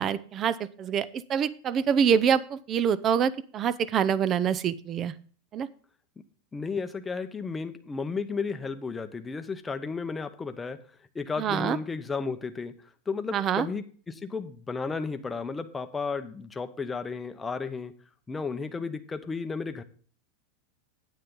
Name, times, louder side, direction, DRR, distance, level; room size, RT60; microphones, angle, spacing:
voice 1, 0.0-5.1 5.5-5.7 11.4-11.8 13.3-13.7, right 8 dB, 30° right, 18 dB, 0.5 m, -26 dB
voice 2, 6.5-10.8 11.1-12.7 13.1-17.9 18.3-19.8, left 4 dB, 10° left, 8 dB, 0.8 m, -33 dB
9.4 x 9.1 x 3.7 m, 0.43 s
supercardioid pair, 150°, 0 cm